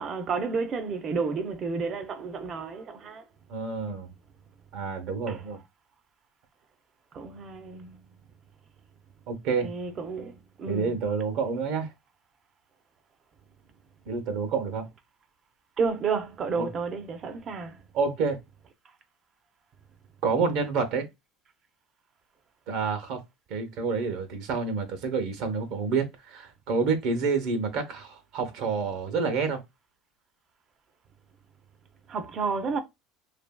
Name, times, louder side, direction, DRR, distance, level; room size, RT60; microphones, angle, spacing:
voice 1, 0.0-3.2 5.3-5.4 7.1-8.0 9.6-10.9 15.8-17.8 32.1-32.8, right 4 dB, 35° right, 0.5 m, -31 dB
voice 2, 3.5-4.1 4.7-5.6 9.3-9.7 10.7-11.9 14.1-14.9 16.6-16.7 17.9-18.4 20.2-21.1 22.7-23.2 23.5-29.6, right 5 dB, 65° right, 0.8 m, -28 dB
2.8 x 2.5 x 2.2 m
supercardioid pair, 130°, 0 cm